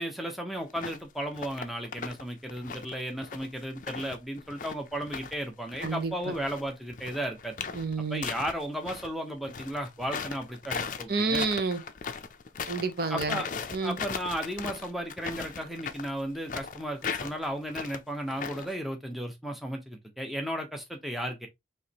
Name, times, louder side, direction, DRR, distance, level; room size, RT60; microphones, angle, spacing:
voice 1, 0.0-7.6 8.1-11.4 13.1-13.5 13.8-21.5, equal, ahead, 0.8 m, -34 dB
sound 1, 0.7-1.0 1.3-2.2 2.5-5.4 5.7-9.1 9.4-18.8, left 6 dB, 45° left, 0.5 m, -38 dB
voice 2, 5.8-6.3 7.7-8.3 11.1-11.8 12.7-13.4 13.7-14.0, right 4 dB, 55° right, 0.6 m, -29 dB
4.7 x 3.0 x 2.8 m
head